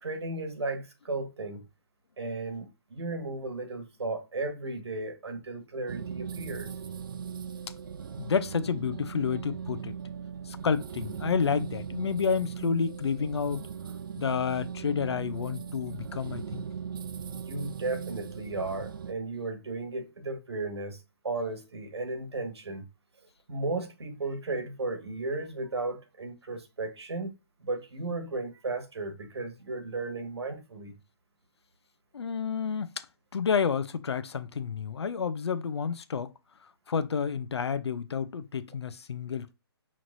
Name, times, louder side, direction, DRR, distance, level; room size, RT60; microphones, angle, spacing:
voice 1, 0.0-1.6 2.2-6.7 17.2-22.8 23.5-27.3 27.6-30.9, right 3 dB, 90° right, 1.5 m, -35 dB
sound 1, 5.9-19.1, right 7 dB, 55° right, 0.5 m, -39 dB
voice 2, 8.2-9.9 10.5-13.6 14.2-16.7 32.1-33.1 33.3-36.3 36.9-39.5, left 6 dB, 80° left, 0.6 m, -30 dB
5.8 x 3.1 x 2.6 m
hypercardioid pair, 165°, 14 cm